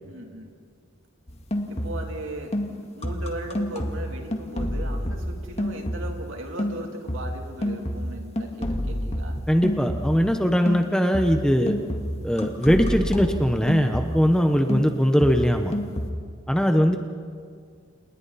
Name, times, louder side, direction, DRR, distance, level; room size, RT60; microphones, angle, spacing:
voice 1, 0.1-0.5 1.7-2.6 2.9-9.4, right 1 dB, 65° right, 2 dB, 3.2 m, -37 dB
sound 1, 1.3-2.2 2.5-6.3 6.6-10.3 10.7-14.4 14.7-16.1, equal, 30° left, 2.0 m, -29 dB
voice 2, 9.5-11.7 12.2-15.7 16.5-17.0, equal, 5° left, 5 dB, 1.0 m, -21 dB
29.5 x 29.5 x 4.2 m, 2.2 s
head